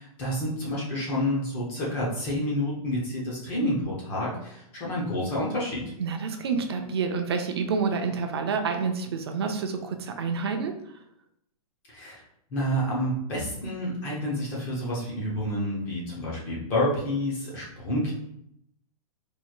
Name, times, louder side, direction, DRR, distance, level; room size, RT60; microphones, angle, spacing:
voice 1, 0.0-5.8 11.9-12.2 12.5-18.1, left 1 dB, 10° left, -5 dB, 0.5 m, -29 dB
voice 2, 6.0-10.7, right 5 dB, 40° right, 5 dB, 0.4 m, -28 dB
4.4 x 3.0 x 2.3 m, 0.77 s
hypercardioid pair, 180°, 19 cm